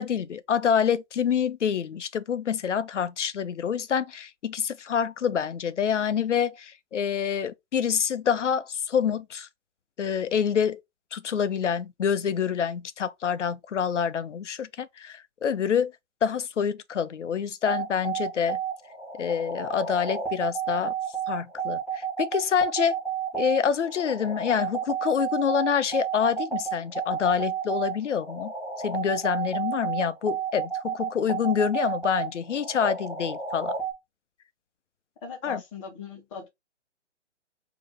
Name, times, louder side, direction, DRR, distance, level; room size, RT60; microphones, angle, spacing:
voice 1, 0.0-9.5 10.0-10.8 11.1-15.9 16.2-18.6 19.2-20.9 21.3-23.0 23.3-28.5 28.8-33.8 35.4-35.6, left 7 dB, 75° left, 0.6 m, -27 dB
sound 1, 17.6-33.9, right 7 dB, ahead, 0.9 m, -31 dB
voice 2, 35.2-36.5, left 5 dB, 25° left, 1.4 m, -39 dB
3.3 x 2.9 x 3.5 m
figure-of-eight pair, 140°, 36 cm